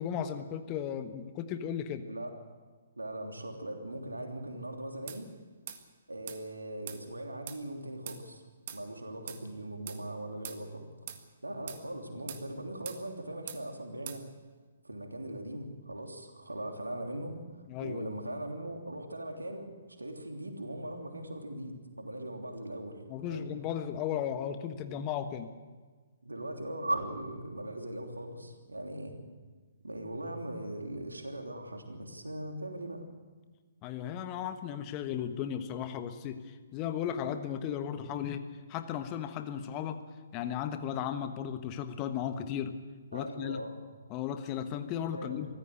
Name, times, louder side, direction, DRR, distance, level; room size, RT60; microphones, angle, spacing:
voice 1, 0.0-2.1 17.7-18.2 23.1-25.5 33.8-38.4 38.7-40.0 40.3-42.7 43.1-43.6 44.1-45.5, left 9 dB, 25° left, 9 dB, 1.3 m, -35 dB
voice 2, 2.0-2.4 3.0-5.3 6.1-8.4 8.7-10.9 11.4-14.3 14.8-23.0 23.3-23.5 26.2-29.1 29.8-33.0 43.1-43.7 45.1-45.4, right 1 dB, 80° right, 3 dB, 3.2 m, -40 dB
sound 1, 5.1-5.2 5.7-5.8 6.3-6.4 6.9-7.0 7.5-7.6 8.1-8.2 8.7-8.8 9.3-9.4 9.9-10.0 10.4-10.6 11.1-11.2 11.7-11.8 12.3-12.5 12.9-13.0 13.5-13.6 14.1-14.2, right 9 dB, 40° right, 1.8 m, -42 dB
23.5 x 15.5 x 7.9 m, 1.4 s
figure-of-eight pair, 130°, 0 cm